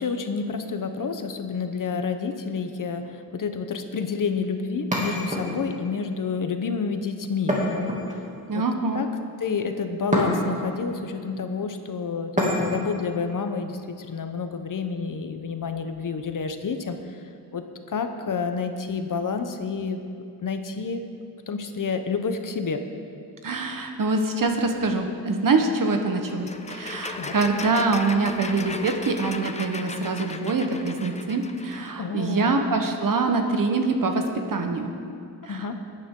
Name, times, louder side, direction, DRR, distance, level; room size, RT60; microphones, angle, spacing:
voice 1, 0.0-8.0 8.5-8.6 8.9-9.1 9.4-17.2 17.5-20.0 20.4-21.0 21.5-22.8 27.2-27.4 32.0-32.6 35.5-35.7, left 5 dB, 50° left, 7 dB, 0.9 m, -29 dB
sound 1, 4.9-5.9 7.5-8.5 10.1-10.7 12.4-13.0, equal, 20° right, 2.4 m, -26 dB
voice 2, 8.5-9.0 23.4-34.9 35.5-35.6, right 3 dB, 55° right, 4 dB, 1.2 m, -24 dB
sound 2, 26.2-31.9, left 3 dB, 20° left, 0.4 m, -36 dB
20.0 x 9.8 x 3.8 m, 2.5 s
wide cardioid pair, 145°, 40 cm